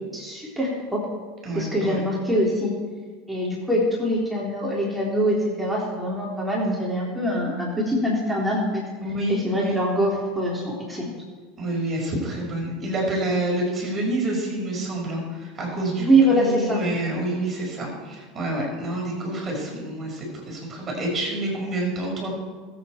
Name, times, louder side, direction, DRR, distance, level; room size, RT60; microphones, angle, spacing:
voice 1, 0.1-1.0 1.6-2.7 3.3-8.8 9.3-11.1 16.0-16.8, equal, 5° right, -3 dB, 3.6 m, -23 dB
voice 2, 1.4-2.0 9.0-9.8 11.6-22.3, right 1 dB, 30° right, -2 dB, 5.0 m, -28 dB
21.5 x 8.3 x 4.5 m, 1.5 s
hypercardioid pair, 85°, 0 cm